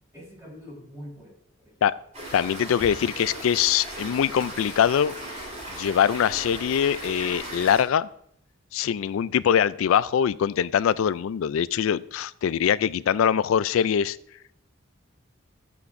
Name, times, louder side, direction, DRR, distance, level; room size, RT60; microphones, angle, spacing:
voice 1, 0.1-1.9 3.0-3.5, equal, 15° right, -4 dB, 4.3 m, -45 dB
sound 1, 2.1-7.8, right 1 dB, 35° right, 3.9 m, -37 dB
voice 2, 2.3-5.1 5.7-8.1 8.7-14.2, left 8 dB, 75° left, 18 dB, 0.3 m, -23 dB
13.0 x 8.4 x 2.6 m, 0.71 s
head